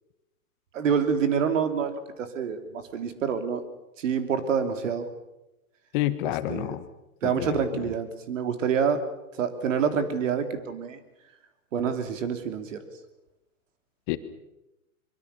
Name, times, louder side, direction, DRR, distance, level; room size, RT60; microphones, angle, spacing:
voice 1, 0.7-3.6 4.0-5.1 6.5-6.7 7.2-9.0 9.4-11.0 11.7-12.8, right 7 dB, 60° right, 8 dB, 3.2 m, -27 dB
voice 2, 5.9-6.8 7.2-7.6 14.1-14.2, left 16 dB, 35° left, 12 dB, 1.3 m, -28 dB
24.0 x 23.0 x 6.9 m, 0.94 s
hypercardioid pair, 135°, 43 cm